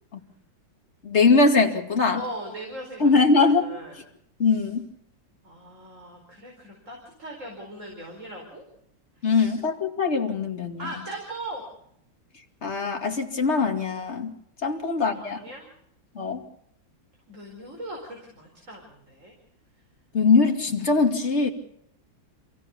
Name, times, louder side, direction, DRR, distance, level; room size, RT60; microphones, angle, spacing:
voice 1, 1.0-2.2 3.0-3.7 4.4-4.8 9.2-10.8 12.6-14.3 14.6-15.4 16.2-16.4 20.1-21.5, left 4 dB, 35° left, 3 dB, 2.8 m, -21 dB
voice 2, 2.1-4.0 4.4-4.6 5.4-8.6 9.2-9.5 10.8-11.7 14.7-15.7 17.3-19.3, right 1 dB, 40° right, 1 dB, 5.0 m, -39 dB
27.5 x 16.5 x 7.1 m, 0.74 s
omnidirectional pair, 2.0 m